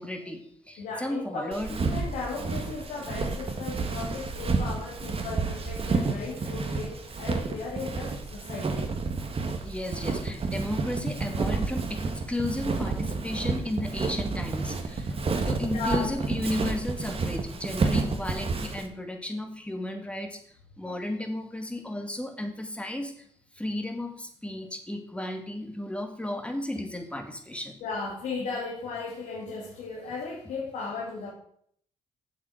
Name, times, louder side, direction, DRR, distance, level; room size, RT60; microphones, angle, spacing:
voice 1, 0.0-1.8 9.6-15.2 15.5-20.4 20.8-23.2 23.5-27.8, left 1 dB, 10° left, 4 dB, 2.3 m, -34 dB
voice 2, 0.8-1.5 1.9-8.9 15.7-16.1 27.8-31.3, left 3 dB, 90° left, -4 dB, 2.4 m, -36 dB
Walk footsteps, 1.5-18.9, right 4 dB, 50° right, 1.7 m, -30 dB
7.6 x 7.6 x 6.4 m, 0.65 s
supercardioid pair, 60°, 13 cm